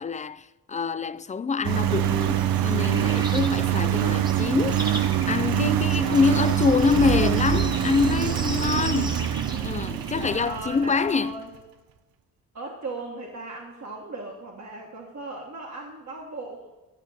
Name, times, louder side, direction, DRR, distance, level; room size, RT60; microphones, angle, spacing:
voice 1, 0.0-9.3 9.6-11.4, left 5 dB, 20° left, 0.3 m, -26 dB
Engine, 1.6-11.1, right 11 dB, 70° right, 0.5 m, -24 dB
sound 1, 1.9-10.4, right 1 dB, 10° right, 1.0 m, -38 dB
voice 2, 6.0-6.9 10.1-11.5 12.5-16.7, right 3 dB, 50° right, 1.4 m, -37 dB
sound 2, 6.6-9.5, left 2 dB, 50° left, 1.4 m, -34 dB
11.5 x 4.5 x 6.1 m
cardioid pair, 55°, 36 cm